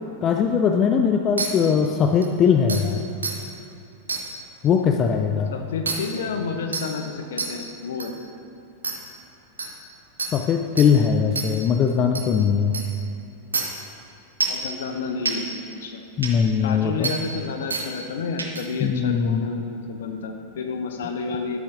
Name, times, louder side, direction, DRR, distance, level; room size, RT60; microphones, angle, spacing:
voice 1, 0.2-3.0 4.6-5.5 10.3-12.8 16.2-17.1 18.8-19.5, left 6 dB, 30° left, 4 dB, 0.4 m, -20 dB
sound 1, 1.4-1.5 2.2-2.3 2.7-2.8 3.2-3.3 4.1-4.2 5.9-6.0 6.7-6.8 7.4-7.5 8.0-8.1 8.8-8.9 9.6-9.7 10.2-10.3 10.8-10.9 11.4-11.5 12.1-12.2 12.7-12.8 13.5-13.6 14.4-14.6 15.3-15.4 16.2-16.3 17.0-17.1 17.7-17.8 18.4-18.6, right 4 dB, 75° right, 0.8 m, -26 dB
voice 2, 5.5-8.1 14.5-15.5 15.8-16.0 16.6-21.6, left 4 dB, 60° left, 5 dB, 0.7 m, -30 dB
10.5 x 8.5 x 2.6 m, 2.6 s
figure-of-eight pair, 90°, 0 cm